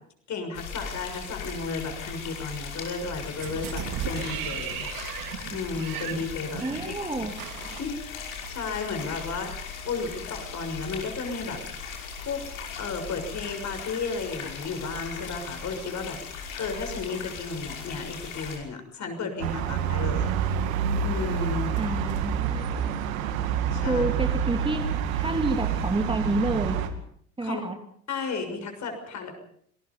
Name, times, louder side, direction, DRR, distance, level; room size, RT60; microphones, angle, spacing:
voice 1, 0.3-4.9 5.5-7.0 7.8-9.5 9.8-11.6 12.2-12.4 12.8-20.3 21.0-21.7 23.7-24.0 27.4-27.6 28.1-29.4, left 4 dB, 40° left, 5 dB, 6.5 m, -33 dB
sound 1, 0.5-18.6, left 5 dB, 70° left, 5.6 m, -38 dB
sound 2, 3.4-8.6 9.0-9.1, right 11 dB, 50° right, 2.2 m, -36 dB
voice 2, 6.6-7.4 21.8-23.0 23.8-26.8 27.4-27.8, right 2 dB, 10° right, 5 dB, 2.6 m, -29 dB
sound 3, 19.4-26.9, right 7 dB, 70° right, 2.2 m, -27 dB
27.0 x 19.5 x 5.4 m, 0.64 s
figure-of-eight pair, 65°, 42 cm